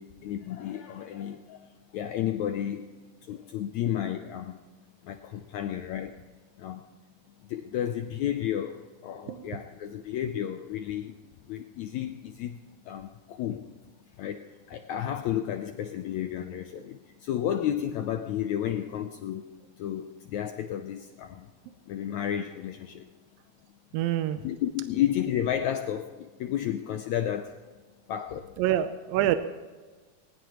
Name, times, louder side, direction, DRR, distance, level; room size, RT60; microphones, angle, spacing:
voice 1, 0.0-1.7 1.9-2.9 3.2-4.6 5.0-6.2 6.6-6.9 7.5-11.2 11.5-13.7 14.2-19.5 19.8-21.5 21.9-23.1 24.4-27.6 28.1-28.5, left 10 dB, 80° left, 7 dB, 1.6 m, -32 dB
voice 2, 9.3-9.6 16.8-16.9 23.9-24.4 28.6-29.4, right 12 dB, 85° right, 10 dB, 2.4 m, -26 dB
20.0 x 19.0 x 3.0 m, 1.3 s
omnidirectional pair, 4.0 m